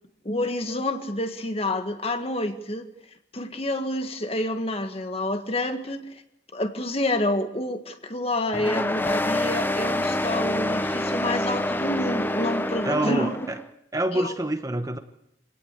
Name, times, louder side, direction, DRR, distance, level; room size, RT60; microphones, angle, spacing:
voice 1, 0.3-2.9 3.3-6.1 6.5-13.4 14.2-14.4, left 1 dB, 30° left, 7 dB, 1.8 m, -28 dB
sound 1, 8.5-13.6, left 1 dB, 10° left, 0.8 m, -27 dB
voice 2, 12.8-13.6 13.9-15.0, right 1 dB, 20° right, 7 dB, 1.1 m, -26 dB
25.5 x 17.5 x 8.4 m, 0.78 s
head